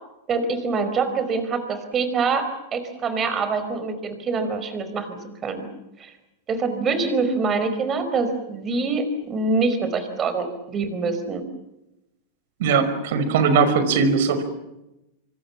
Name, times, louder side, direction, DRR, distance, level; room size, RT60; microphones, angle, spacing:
voice 1, 0.3-5.7 6.0-6.1 6.5-11.4, right 4 dB, 25° right, 10 dB, 5.0 m, -25 dB
voice 2, 12.6-14.4, right 5 dB, 65° right, 11 dB, 5.3 m, -19 dB
25.5 x 25.5 x 7.3 m, 0.93 s
supercardioid pair, 140°, 0 cm